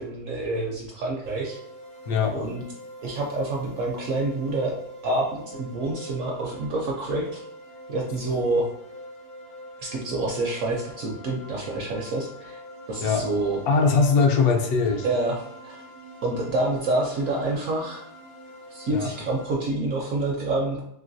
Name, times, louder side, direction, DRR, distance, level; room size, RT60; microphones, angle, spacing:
voice 1, 0.0-1.6 2.3-2.6 3.0-7.4 7.9-8.7 9.8-12.6 12.9-13.6 15.0-15.8 16.2-18.0 18.7-20.8, right 2 dB, 65° right, -1 dB, 0.8 m, -27 dB
sound 1, 1.2-19.5, equal, 50° left, 0.5 m, -44 dB
voice 2, 2.1-2.4 13.0-13.2 13.7-15.1 18.9-19.1, left 4 dB, 70° left, 3 dB, 1.0 m, -21 dB
3.1 x 2.9 x 2.6 m, 0.74 s
omnidirectional pair, 1.8 m